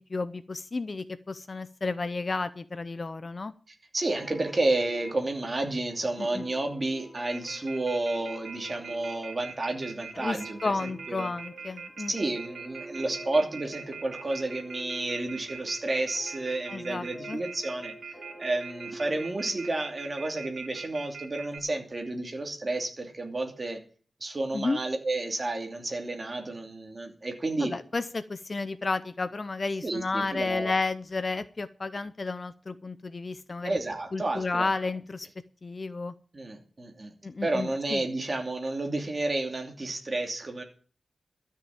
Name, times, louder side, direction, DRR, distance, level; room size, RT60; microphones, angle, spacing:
voice 1, 0.1-3.5 6.2-6.4 10.2-12.1 16.7-17.4 24.5-24.8 27.6-33.8 34.1-35.3 35.6-36.1 37.2-38.0, left 3 dB, 35° left, 13 dB, 0.6 m, -32 dB
voice 2, 3.9-11.3 12.1-17.9 18.4-23.8 24.2-27.7 29.8-30.7 33.6-34.7 36.3-37.1 37.4-40.6, right 2 dB, 30° right, 3 dB, 2.7 m, -31 dB
sound 1, 4.1-21.2, right 1 dB, 10° left, 6.7 m, -48 dB
Telephone, 7.3-21.6, right 5 dB, 90° right, 2.5 m, -41 dB
13.0 x 6.5 x 8.8 m, 0.40 s
wide cardioid pair, 170°, 0 cm